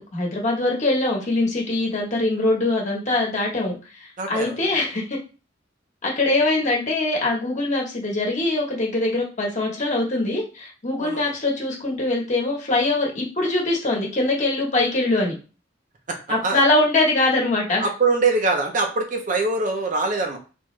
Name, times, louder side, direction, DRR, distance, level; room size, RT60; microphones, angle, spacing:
voice 1, 0.0-5.2 6.0-15.3 16.3-17.8, left 2 dB, 40° left, -2 dB, 1.3 m, -23 dB
voice 2, 4.2-4.7 11.0-11.3 16.1-16.2 16.4-16.6 17.8-20.4, right 3 dB, 45° right, 3 dB, 0.7 m, -23 dB
3.5 x 3.1 x 3.2 m, 0.33 s
head